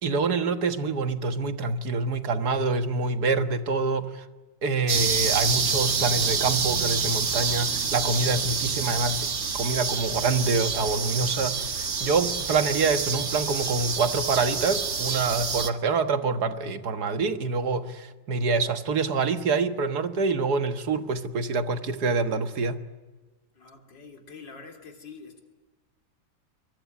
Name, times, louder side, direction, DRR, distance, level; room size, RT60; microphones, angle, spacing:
voice 1, 0.0-4.3 4.6-9.3 9.5-22.8, right 4 dB, 60° right, 9 dB, 1.9 m, -26 dB
sound 1, 4.9-15.7, right 5 dB, 40° right, 1.5 m, -27 dB
voice 2, 23.5-25.4, left 5 dB, 75° left, 4 dB, 4.2 m, -45 dB
25.0 x 23.0 x 9.6 m, 1.3 s
omnidirectional pair, 2.0 m